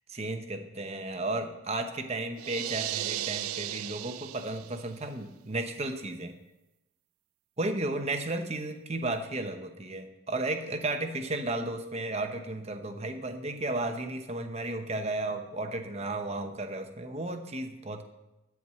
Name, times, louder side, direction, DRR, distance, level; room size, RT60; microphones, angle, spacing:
voice 1, 0.1-6.3 7.6-18.0, right 2 dB, 30° right, 6 dB, 0.9 m, -34 dB
sound 1, 2.4-4.9, right 13 dB, 90° right, 0.4 m, -35 dB
14.0 x 4.7 x 7.4 m, 0.95 s
head